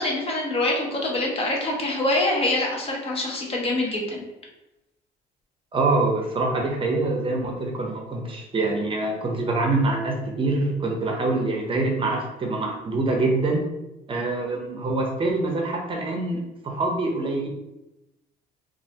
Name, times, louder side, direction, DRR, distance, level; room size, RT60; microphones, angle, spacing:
voice 1, 0.0-4.2, left 2 dB, 35° left, -1 dB, 0.7 m, -25 dB
voice 2, 5.7-13.6 14.1-17.5, right 2 dB, 30° right, 1 dB, 0.6 m, -25 dB
3.1 x 2.4 x 2.8 m, 0.95 s
cardioid pair, 110°, 17 cm